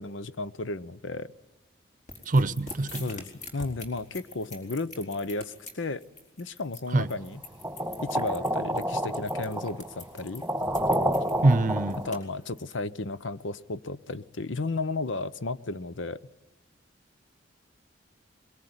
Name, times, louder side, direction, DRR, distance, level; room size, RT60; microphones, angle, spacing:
voice 1, 0.0-1.3 3.0-3.3 3.5-6.0 6.4-7.4 8.0-10.4 12.0-16.2, left 3 dB, 80° left, 0.8 m, -33 dB
sound 1, 2.1-12.7, left 2 dB, 40° left, 4.2 m, -44 dB
voice 2, 2.3-3.1 6.9-7.1 11.4-12.0, right 2 dB, 45° right, 0.7 m, -23 dB
sound 2, 7.6-12.2, equal, 5° right, 1.7 m, -29 dB
22.0 x 21.5 x 9.7 m
head